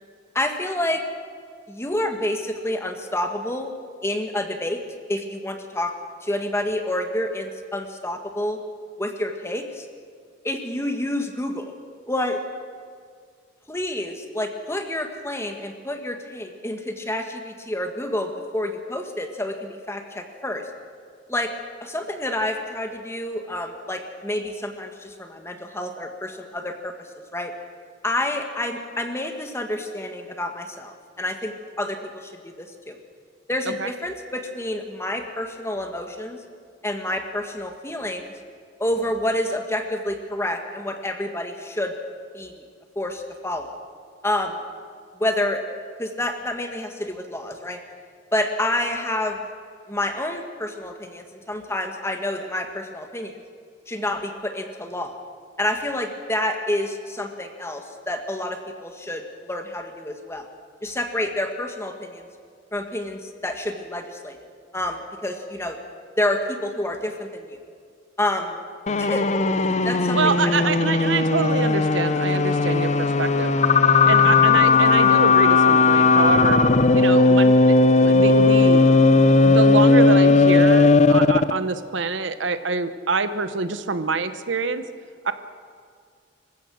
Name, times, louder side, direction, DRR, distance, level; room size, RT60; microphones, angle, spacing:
voice 1, 0.3-1.0 1.7-3.7 4.0-4.8 5.1-5.9 6.2-8.6 9.0-9.8 10.4-11.7 12.1-12.4 13.7-20.7 21.3-21.5 21.8-27.5 28.0-33.0 33.5-36.4 36.8-38.3 38.8-41.9 42.3-42.6 42.9-43.8 44.2-44.6 45.1-45.6 46.0-47.8 48.3-49.4 49.9-53.4 53.9-55.1 55.6-60.5 60.8-62.3 62.7-64.4 64.7-65.8 66.2-67.6 68.2-68.6 69.0-69.2 69.8-70.3 70.6-70.7 71.0-71.1, left 1 dB, 15° left, 5 dB, 1.6 m, -28 dB
sound 1, 68.9-81.6, left 3 dB, 35° left, 0.6 m, -16 dB
voice 2, 70.1-73.5 74.1-76.6 76.9-78.9 79.4-84.8 85.2-85.3, right 4 dB, 75° right, 11 dB, 1.0 m, -25 dB
26.0 x 15.5 x 6.4 m, 2.1 s
head